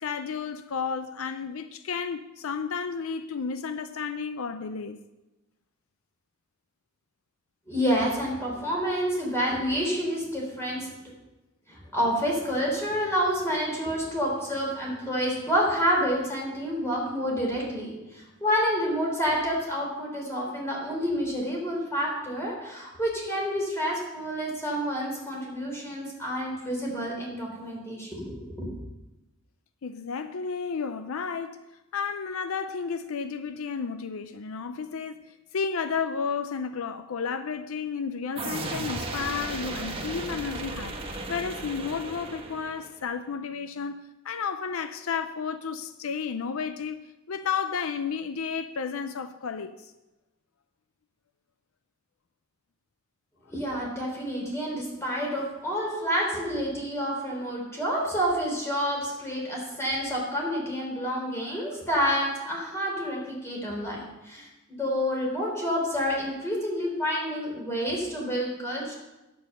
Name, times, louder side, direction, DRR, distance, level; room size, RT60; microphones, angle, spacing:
voice 1, 0.0-5.0 29.8-31.6 31.9-35.2 35.5-47.0 47.3-49.9, left 6 dB, 80° left, 0.5 m, -32 dB
voice 2, 7.7-10.9 11.7-28.7 53.5-64.0 64.3-68.9, equal, 15° left, 3.4 m, -28 dB
sound 1, 38.4-43.0, right 2 dB, 25° right, 1.2 m, -35 dB
9.3 x 7.8 x 6.4 m
head